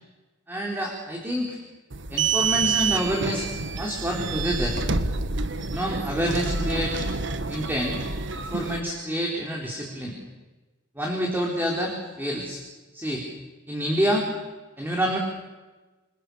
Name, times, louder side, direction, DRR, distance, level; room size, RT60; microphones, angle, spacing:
voice 1, 0.5-1.6 2.1-3.5 3.8-4.8 5.7-7.1 7.5-8.0 8.3-10.2 11.0-12.6 12.9-13.2 13.7-14.3 14.8-15.2, equal, 10° right, -1 dB, 4.1 m, -27 dB
sound 1, 1.9-8.8, right 4 dB, 65° right, 1.4 m, -28 dB
28.0 x 27.0 x 7.0 m, 1.2 s
head